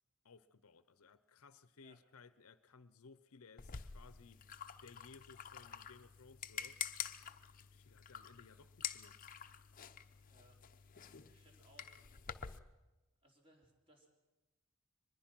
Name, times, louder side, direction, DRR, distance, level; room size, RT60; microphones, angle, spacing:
voice 1, 0.2-4.5 4.8-6.8 7.6-9.2, left 4 dB, 90° left, 15 dB, 0.7 m, -60 dB
sound 1, 3.6-12.6, left 8 dB, 40° left, 0.7 m, -48 dB
voice 2, 10.3-10.6 11.2-12.1 13.2-14.1, right 1 dB, 25° right, 1 dB, 3.4 m, -67 dB
24.0 x 20.5 x 6.0 m, 1.1 s
head